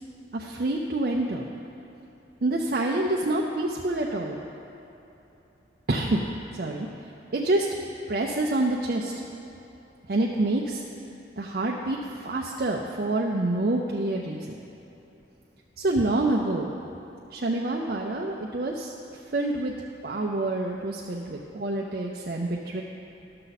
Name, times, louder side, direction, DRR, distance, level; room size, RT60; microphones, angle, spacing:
voice 1, 0.3-1.5 2.4-4.4 5.9-6.2 6.5-6.9 7.3-7.7 8.1-9.2 10.1-10.8 11.4-14.5 15.8-16.7 17.3-18.9 19.3-19.7 20.0-22.8, right 2 dB, 55° right, -1 dB, 0.5 m, -27 dB
12.5 x 6.6 x 4.1 m, 3.0 s
head